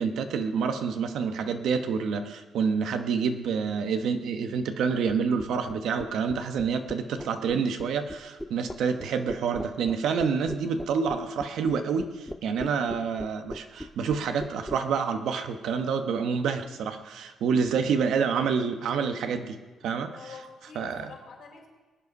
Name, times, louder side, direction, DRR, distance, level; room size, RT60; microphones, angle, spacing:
voice 1, 0.0-19.6 19.8-20.3 20.7-21.1, right 6 dB, 75° right, 7 dB, 1.1 m, -28 dB
sound 1, 5.1-14.8, left 1 dB, 5° left, 0.6 m, -38 dB
voice 2, 20.1-21.7, left 5 dB, 60° left, 1 dB, 4.0 m, -46 dB
21.0 x 8.4 x 5.4 m, 1.3 s
cardioid pair, 90°, 0 cm